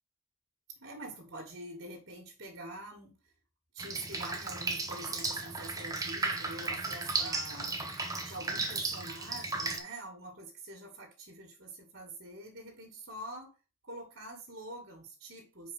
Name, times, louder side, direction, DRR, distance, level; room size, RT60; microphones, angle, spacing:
voice 1, 0.8-3.1 3.7-7.7 8.2-13.5 13.8-15.7, right 2 dB, 55° right, -2 dB, 2.2 m, -45 dB
Drip, 3.8-9.8, right 3 dB, 15° right, 0.9 m, -35 dB
5.6 x 5.2 x 5.6 m, 0.33 s
head